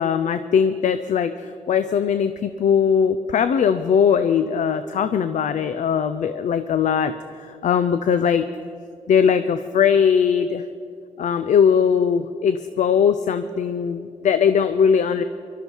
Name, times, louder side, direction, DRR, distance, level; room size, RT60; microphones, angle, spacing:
voice 1, 0.0-7.1 7.4-8.5 9.1-10.6 11.2-15.2, left 7 dB, 75° left, 11 dB, 0.5 m, -20 dB
23.0 x 12.5 x 4.5 m, 2.4 s
cardioid pair, 85°, 13 cm